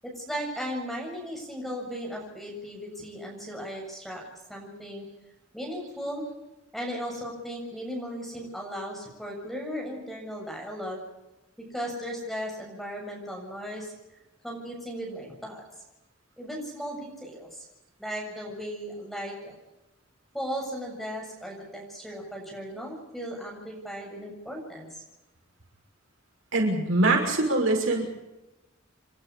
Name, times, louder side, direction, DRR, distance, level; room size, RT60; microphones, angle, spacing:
voice 1, 0.0-4.2 4.5-5.1 5.5-6.2 6.7-11.0 11.7-13.9 14.4-15.6 16.4-17.6 18.0-19.5 20.3-25.0, equal, ahead, -1 dB, 7.3 m, -36 dB
voice 2, 26.5-28.1, right 2 dB, 80° right, 1 dB, 6.1 m, -23 dB
29.5 x 12.0 x 8.5 m, 1.0 s
head